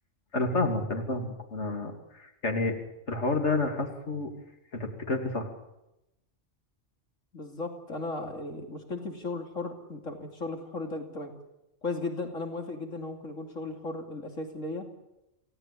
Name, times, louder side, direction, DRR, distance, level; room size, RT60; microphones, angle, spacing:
voice 1, 0.3-2.7 3.1-4.3 4.7-5.5, left 2 dB, 60° left, 3 dB, 3.2 m, -29 dB
voice 2, 7.3-11.3 11.8-14.9, left 3 dB, 85° left, 3 dB, 3.2 m, -36 dB
28.5 x 18.0 x 8.5 m, 0.92 s
omnidirectional pair, 1.3 m